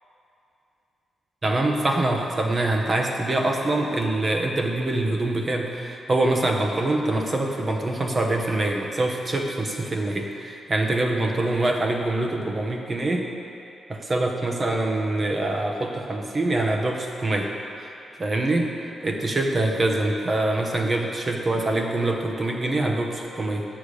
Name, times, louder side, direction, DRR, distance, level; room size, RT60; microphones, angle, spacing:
voice 1, 1.4-13.3 13.9-17.5 18.2-18.7 19.0-23.7, right 2 dB, 30° right, 2 dB, 1.0 m, -24 dB
8.1 x 6.8 x 6.5 m, 2.7 s
wide cardioid pair, 130°, 0 cm